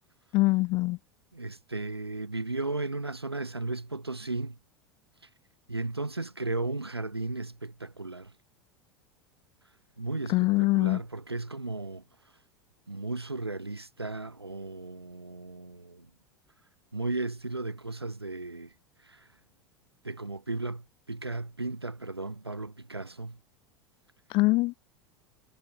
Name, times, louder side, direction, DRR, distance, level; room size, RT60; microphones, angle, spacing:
voice 1, 0.3-1.0 10.3-11.0 24.3-24.7, left 22 dB, 40° left, 0.5 m, -23 dB
voice 2, 1.3-4.5 5.7-8.3 10.0-12.0 12.9-16.1 16.9-18.7 19.0-19.3 20.0-23.4, right 2 dB, 85° right, 2.7 m, -35 dB
figure-of-eight pair, 80°, 13 cm